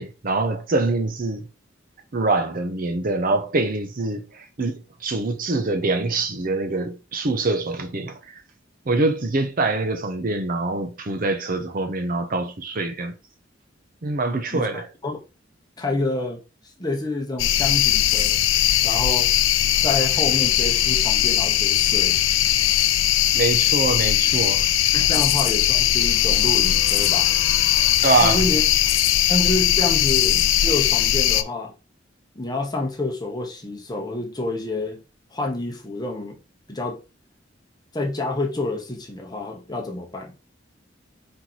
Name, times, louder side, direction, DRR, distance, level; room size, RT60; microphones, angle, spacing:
voice 1, 0.0-1.4 2.1-8.4 8.9-13.1 14.0-14.9 23.3-24.7 28.0-28.4, right 3 dB, 45° right, 0.6 m, -24 dB
voice 2, 15.8-16.4 16.8-18.4 18.8-19.3 19.8-22.2 24.9-27.3 28.2-28.6 29.3-31.7 32.3-35.0 35.3-36.4 36.7-37.0 37.9-40.4, left 2 dB, 20° left, 1.0 m, -28 dB
sound 1, 17.4-31.4, left 12 dB, 80° left, 0.4 m, -19 dB
4.4 x 3.0 x 3.9 m
head